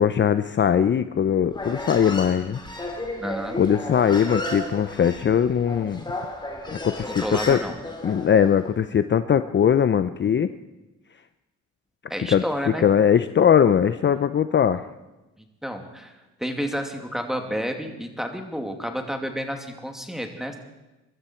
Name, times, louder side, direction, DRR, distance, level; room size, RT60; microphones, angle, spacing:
voice 1, 0.0-2.6 3.5-6.0 6.7-7.6 8.0-10.5 12.3-14.9, left 8 dB, 40° left, 11 dB, 0.6 m, -20 dB
Human voice, 1.5-8.6, left 1 dB, 15° left, 3.1 m, -34 dB
voice 2, 3.2-3.6 7.0-7.7 12.1-12.8 15.4-16.1 16.4-20.6, equal, ahead, 4 dB, 2.5 m, -30 dB
23.0 x 13.0 x 4.5 m, 1.1 s
cardioid pair, 90°, 30 cm